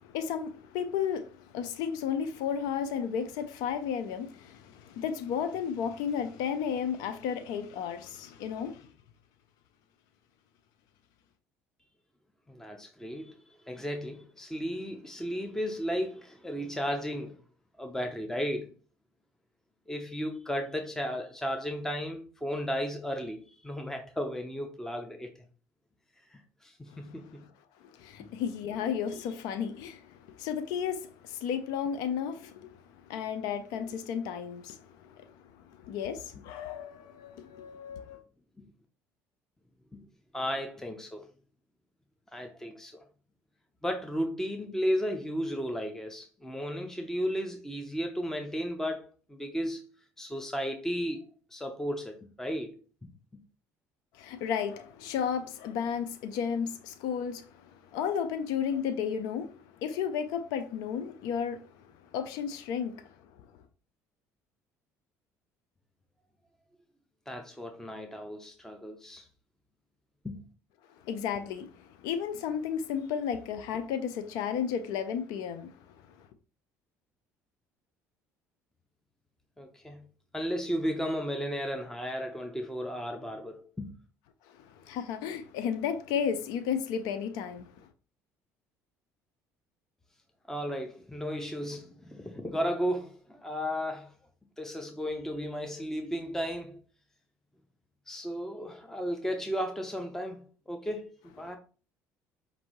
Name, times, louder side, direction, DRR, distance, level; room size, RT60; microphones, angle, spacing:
voice 1, 0.0-8.9 27.0-27.3 27.8-38.2 54.1-61.7 62.1-63.1 71.0-76.3 84.5-87.9 101.4-101.5, left 7 dB, 75° left, 0.5 m, -33 dB
voice 2, 12.5-17.4 17.8-18.7 19.9-25.3 26.3-27.4 39.9-40.0 40.3-41.3 42.3-43.0 43.8-49.9 50.2-52.8 67.3-69.3 70.2-70.4 79.6-80.0 80.3-83.9 90.5-94.1 94.6-96.8 98.1-101.6, equal, 5° left, 0.7 m, -34 dB
5.2 x 2.6 x 3.1 m
supercardioid pair, 75°, 7 cm